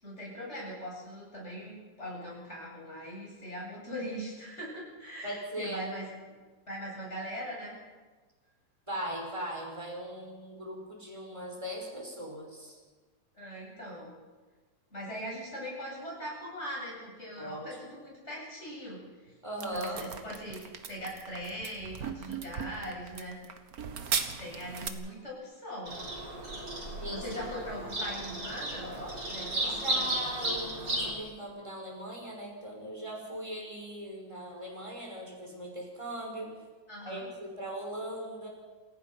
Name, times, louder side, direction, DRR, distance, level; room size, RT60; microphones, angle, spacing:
voice 1, 0.0-6.1 6.7-7.8 13.3-14.1 14.9-19.3 19.7-20.6 20.9-23.3 24.4-25.9 26.8-30.1 36.9-37.3, equal, 40° left, -4 dB, 8.5 m, -41 dB
voice 2, 5.2-5.8 8.9-12.8 17.4-17.8 19.4-20.1 27.0-27.6 29.7-36.5 37.0-38.5, right 1 dB, 15° right, -1 dB, 5.6 m, -39 dB
sound 1, 19.6-24.9, right 6 dB, 60° right, 1.8 m, -37 dB
Bird vocalization bird call bird song, 25.9-31.1, right 1 dB, 80° right, 4.8 m, -34 dB
27.5 x 17.0 x 5.8 m, 1.3 s
omnidirectional pair, 1.8 m